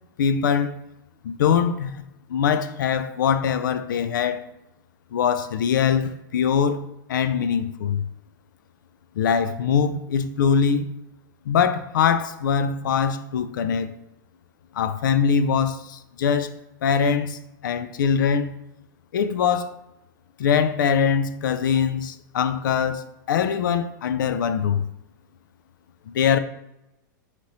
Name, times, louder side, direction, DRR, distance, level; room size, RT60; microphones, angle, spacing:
voice 1, 0.2-0.7 1.2-2.0 2.3-4.4 5.1-6.8 7.1-8.0 9.2-10.8 11.5-13.9 14.8-16.5 16.8-18.6 19.1-19.7 20.4-24.8 26.1-26.4, left 7 dB, 80° left, 0.4 m, -22 dB
4.2 x 2.9 x 2.6 m
hypercardioid pair, 115°, 10 cm